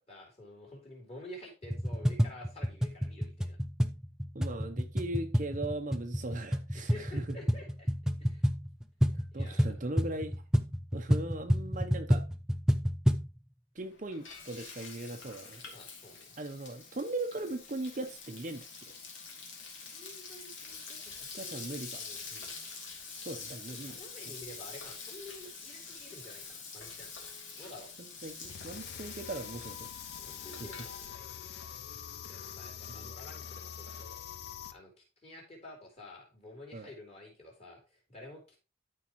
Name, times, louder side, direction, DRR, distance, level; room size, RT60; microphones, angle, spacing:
voice 1, 0.1-3.6 6.7-7.9 8.2-8.4 9.3-9.7 15.7-16.3 19.9-22.5 23.7-27.1 27.6-27.9 30.2-31.5 32.3-34.2 34.7-34.9 35.2-38.6, left 1 dB, 30° left, 3.7 m, -50 dB
sound 1, 1.6-13.3, equal, 5° right, 0.5 m, -30 dB
voice 2, 4.3-7.4 9.3-10.3 10.9-12.2 13.7-15.6 16.4-18.9 21.4-22.0 23.2-24.0 28.0-29.9 30.6-30.7 32.9-33.1 36.7-36.9, right 2 dB, 40° right, 0.8 m, -39 dB
Frying (food), 13.8-31.1, left 5 dB, 70° left, 2.6 m, -46 dB
sound 2, 28.4-34.7, left 8 dB, 55° left, 0.6 m, -45 dB
12.5 x 4.8 x 3.0 m
head